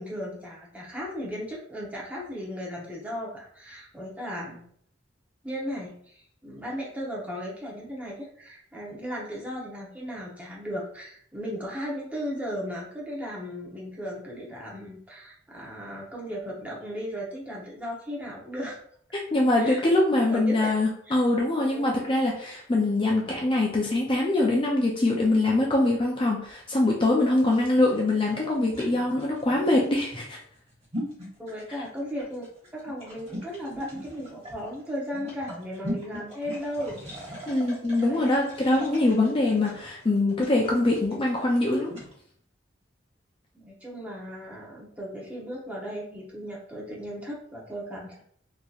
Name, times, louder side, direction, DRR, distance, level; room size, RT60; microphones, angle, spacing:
voice 1, 0.0-4.6 5.4-18.8 19.6-19.8 20.3-20.7 21.1-21.2 21.6-21.9 31.4-32.4 32.7-37.1 38.0-38.3 43.5-48.2, equal, 10° right, -4 dB, 0.9 m, -36 dB
voice 2, 19.3-30.4 37.5-41.9, left 2 dB, 25° left, -2 dB, 0.5 m, -23 dB
sound 1, 27.4-42.1, equal, 35° right, 1.2 m, -40 dB
3.9 x 2.9 x 2.4 m, 0.62 s
head